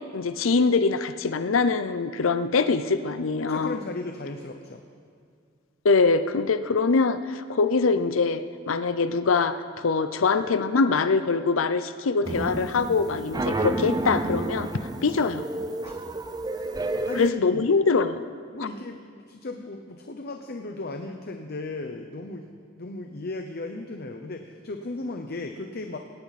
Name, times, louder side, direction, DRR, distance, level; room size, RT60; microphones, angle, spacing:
voice 1, 0.0-3.8 5.8-14.7 15.0-15.4 17.2-18.2, left 4 dB, 85° left, 11 dB, 0.6 m, -23 dB
voice 2, 3.4-4.8 15.8-16.0 16.6-17.7 18.5-22.5 22.8-26.0, left 2 dB, 50° left, 5 dB, 0.8 m, -36 dB
sound 1, 12.2-17.3, right 2 dB, 20° right, 0.6 m, -30 dB
18.0 x 17.0 x 4.2 m, 2.2 s
head